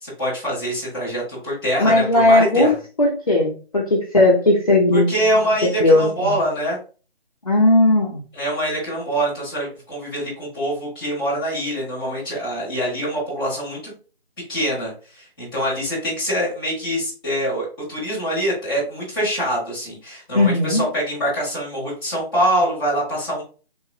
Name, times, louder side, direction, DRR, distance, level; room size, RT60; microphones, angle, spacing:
voice 1, 0.0-2.7 4.9-6.8 8.3-13.9 14.5-23.4, equal, ahead, -9 dB, 1.1 m, -24 dB
voice 2, 1.8-2.7 3.0-5.1 5.8-6.4 7.5-8.2 20.3-20.8, left 2 dB, 35° left, -4 dB, 0.6 m, -16 dB
3.9 x 2.9 x 2.5 m, 0.37 s
figure-of-eight pair, 170°, 32 cm